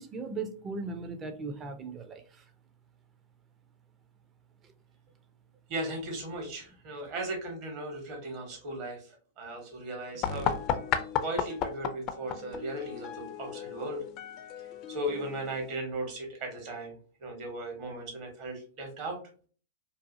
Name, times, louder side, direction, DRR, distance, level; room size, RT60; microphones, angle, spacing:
voice 1, 0.0-2.5 4.6-4.7, right 3 dB, 25° right, 0.5 m, -38 dB
voice 2, 5.7-9.0 9.4-10.5 11.2-14.0 14.9-16.9 17.2-19.2, right 1 dB, 50° right, 1.2 m, -37 dB
sound 1, 10.2-15.8, left 8 dB, 40° left, 0.4 m, -34 dB
2.6 x 2.3 x 2.6 m
hypercardioid pair, 110°, 0 cm